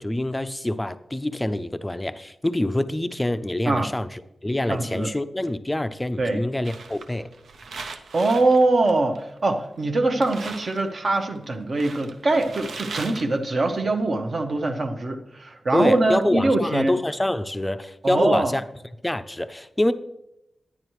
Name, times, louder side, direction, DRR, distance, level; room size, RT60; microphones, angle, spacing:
voice 1, 0.0-7.3 15.7-18.6 19.0-19.9, left 1 dB, 10° left, 12 dB, 0.4 m, -26 dB
voice 2, 4.7-5.1 6.2-6.4 8.1-16.9 18.0-18.6, right 2 dB, 45° right, 5 dB, 0.9 m, -23 dB
sound 1, 6.6-9.5 9.9-10.0 10.2-13.8, right 4 dB, 90° right, 0.6 m, -39 dB
10.5 x 9.9 x 3.1 m, 0.82 s
wide cardioid pair, 145°, 0 cm